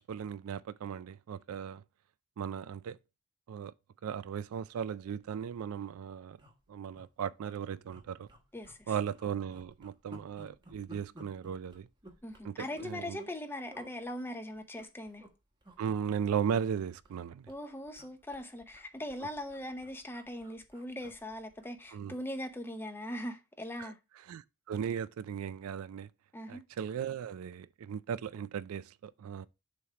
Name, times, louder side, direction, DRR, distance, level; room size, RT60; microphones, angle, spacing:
voice 1, 0.0-1.8 2.4-3.0 3.5-3.7 4.0-6.4 6.7-8.3 8.9-11.9 12.4-13.2 15.8-17.5 21.9-22.1 23.8-23.9 24.3-26.1 26.5-29.5, right 7 dB, 85° right, 0.3 m, -37 dB
sound 1, 5.7-5.9 6.4-7.1 7.4-7.6 7.9-8.8 9.1-13.4 13.7-13.9 14.5-15.3 15.6-15.8 16.1-17.2 17.5-22.0 22.4-22.6, equal, 20° right, 1.0 m, -56 dB
voice 2, 8.5-8.9 12.2-15.3 17.5-24.0 26.3-26.6, left 1 dB, 10° left, 0.7 m, -40 dB
7.0 x 3.2 x 4.7 m
head